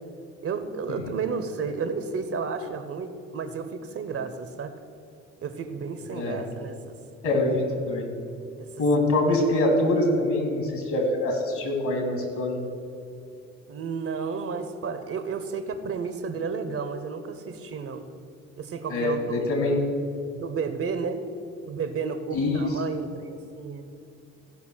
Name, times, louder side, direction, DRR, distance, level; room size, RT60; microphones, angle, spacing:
voice 1, 0.4-4.7 5.4-7.0 8.6-8.8 13.7-18.1 18.6-19.5 20.3-21.2 21.7-23.9, right 5 dB, 40° right, 9 dB, 0.9 m, -32 dB
voice 2, 7.2-8.1 8.8-12.6 18.9-19.8 22.3-22.8, left 1 dB, 50° left, 3 dB, 2.4 m, -24 dB
14.5 x 5.7 x 6.2 m, 2.6 s
figure-of-eight pair, 50°, 36 cm